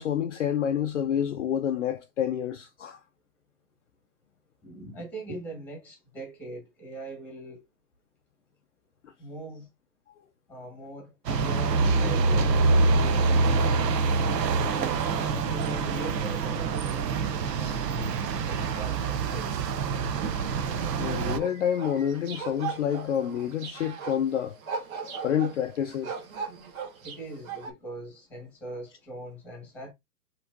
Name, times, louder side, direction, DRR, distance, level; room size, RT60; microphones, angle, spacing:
voice 1, 0.0-3.0 21.0-24.6 25.0-26.2, left 9 dB, 50° left, 0.5 m, -28 dB
voice 2, 4.6-7.6 9.2-9.7 10.5-13.9 14.4-17.8 18.4-19.7 27.0-29.9, right 1 dB, 5° left, 1.2 m, -42 dB
sound 1, 11.3-21.4, right 4 dB, 75° right, 0.9 m, -25 dB
sound 2, 21.4-27.7, right 6 dB, 55° right, 1.3 m, -38 dB
5.9 x 3.0 x 2.5 m
hypercardioid pair, 155°, 50 cm